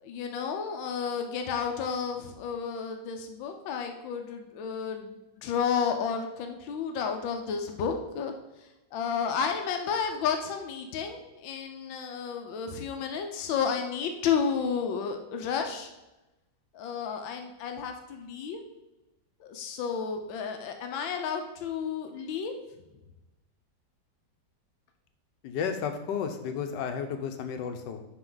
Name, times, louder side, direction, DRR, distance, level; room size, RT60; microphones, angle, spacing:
voice 1, 0.0-8.3 8.9-15.9 16.7-18.7 19.4-22.5, left 6 dB, 90° left, 5 dB, 1.5 m, -32 dB
voice 2, 25.4-28.0, left 7 dB, 70° left, 7 dB, 1.4 m, -32 dB
10.5 x 4.3 x 3.9 m, 1.0 s
omnidirectional pair, 2.0 m